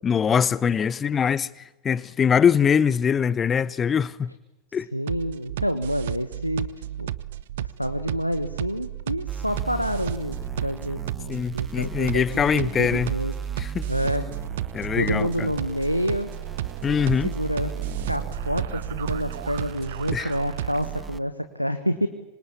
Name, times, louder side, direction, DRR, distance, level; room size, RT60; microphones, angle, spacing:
voice 1, 0.0-4.3 4.7-4.9 11.3-13.1 13.6-13.9 14.7-15.5 16.8-17.3 20.1-20.3, left 7 dB, 20° left, 0.9 m, -23 dB
voice 2, 4.9-6.7 7.0-7.1 7.6-13.3 13.9-14.2 15.0-16.3 17.2-17.7 18.1-22.1, equal, 90° left, 1.5 m, -28 dB
sound 1, 5.1-21.0, right 12 dB, 55° right, 0.9 m, -33 dB
sound 2, 9.3-21.2, right 6 dB, 15° right, 0.9 m, -36 dB
26.5 x 25.5 x 8.6 m
figure-of-eight pair, 90°, 0 cm